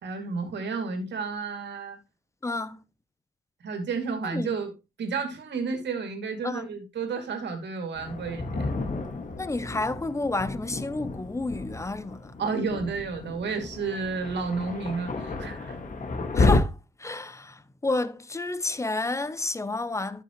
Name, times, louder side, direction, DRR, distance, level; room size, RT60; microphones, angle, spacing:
voice 1, 0.0-2.0 3.6-4.7 5.0-8.7 12.4-15.8, right 4 dB, 60° right, 2.6 m, -31 dB
voice 2, 2.4-2.8 4.3-4.5 6.4-6.7 9.4-12.4 16.3-20.2, left 2 dB, 15° left, 0.7 m, -30 dB
Thunder, 7.9-16.6, left 3 dB, 40° left, 1.9 m, -31 dB
12.0 x 6.5 x 3.0 m
cardioid pair, 90°, 20 cm